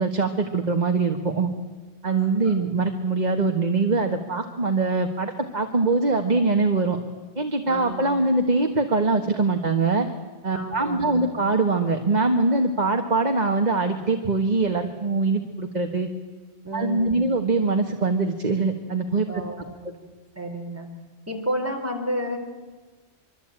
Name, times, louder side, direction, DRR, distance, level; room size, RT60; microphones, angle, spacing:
voice 1, 0.0-1.5 2.0-7.0 7.3-10.1 10.4-16.1 16.7-19.4, right 3 dB, 40° right, 4 dB, 1.6 m, -23 dB
voice 2, 2.0-2.5 7.7-8.2 10.5-11.3 16.6-17.3 19.3-19.9 20.4-20.9 21.3-22.4, equal, 15° right, 2 dB, 4.0 m, -31 dB
25.0 x 24.0 x 9.0 m, 1.3 s
omnidirectional pair, 1.1 m